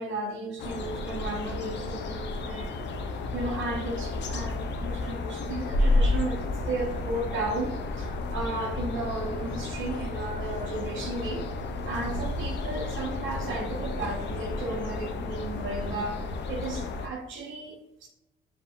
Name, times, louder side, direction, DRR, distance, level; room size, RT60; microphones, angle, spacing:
voice 1, 0.0-2.7 3.3-11.5 11.8-18.1, right 2 dB, 75° right, 1 dB, 0.8 m, -34 dB
sound 1, 0.6-17.1, left 2 dB, 65° left, 0.6 m, -31 dB
4.8 x 3.5 x 2.5 m, 0.86 s
cardioid pair, 90°, 20 cm